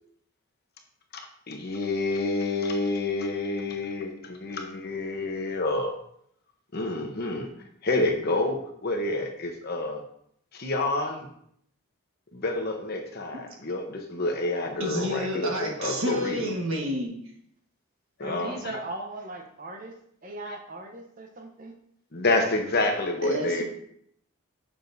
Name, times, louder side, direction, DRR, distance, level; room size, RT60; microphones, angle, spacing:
voice 1, 1.1-6.0 6.7-7.5 7.8-10.0 10.5-11.3 12.3-16.5 18.2-18.8 20.4-20.6 22.1-23.6, left 2 dB, 45° left, 3 dB, 0.9 m, -28 dB
voice 2, 14.8-17.1 23.2-23.6, equal, 60° right, 0 dB, 1.5 m, -30 dB
voice 3, 18.2-19.9 20.2-21.7, right 2 dB, 40° right, 3 dB, 0.8 m, -38 dB
7.1 x 6.1 x 2.7 m, 0.68 s
head